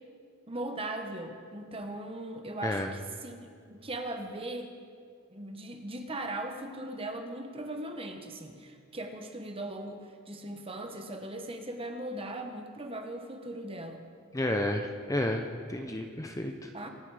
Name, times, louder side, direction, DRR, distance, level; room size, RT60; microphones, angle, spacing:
voice 1, 0.5-3.4 3.7-4.7 5.3-14.0 16.7-16.9, right 1 dB, 25° right, 5 dB, 1.2 m, -39 dB
voice 2, 14.3-16.7, left 1 dB, 15° left, 4 dB, 0.6 m, -31 dB
25.0 x 9.8 x 4.9 m, 2.2 s
head